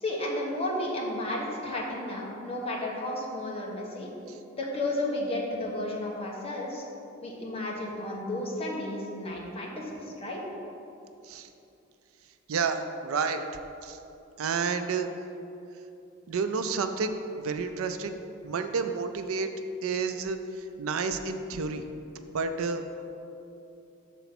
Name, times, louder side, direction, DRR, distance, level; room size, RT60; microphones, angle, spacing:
voice 1, 0.0-4.1 4.5-6.8 7.2-10.4, left 1 dB, 30° left, -2 dB, 1.1 m, -33 dB
voice 2, 12.5-13.4 13.8-14.0 14.4-15.1 16.3-18.2 18.4-19.5 19.8-21.8 22.3-22.8, right 5 dB, 80° right, 8 dB, 0.4 m, -30 dB
6.8 x 4.1 x 5.9 m, 2.8 s
head